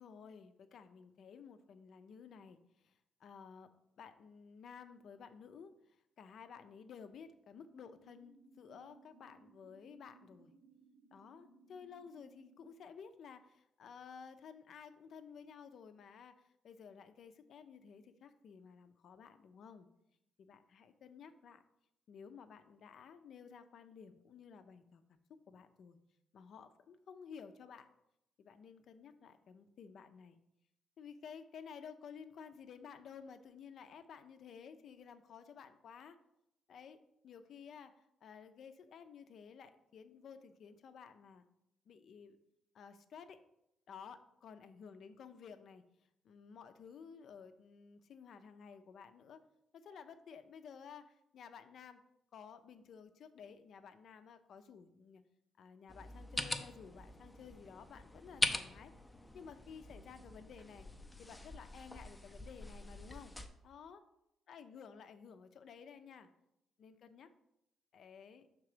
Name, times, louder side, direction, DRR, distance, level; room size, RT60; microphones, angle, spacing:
voice 1, 0.0-10.5 11.1-19.9 20.4-21.6 22.1-25.2 25.5-26.0 26.3-27.9 28.4-30.4 31.0-36.2 36.7-41.5 41.9-42.4 42.7-43.4 43.9-49.4 49.7-52.0 52.3-55.2 55.6-58.9 59.3-60.9 61.2-63.3 63.6-64.0 64.5-66.3 66.8-67.3 67.9-68.5, left 6 dB, 65° left, 9 dB, 0.5 m, -54 dB
sound 1, 7.7-12.7, right 3 dB, 25° right, 0.9 m, -64 dB
sound 2, 55.9-63.5, left 1 dB, 10° left, 0.5 m, -42 dB
5.9 x 3.7 x 4.9 m, 0.83 s
cardioid pair, 90°, 0 cm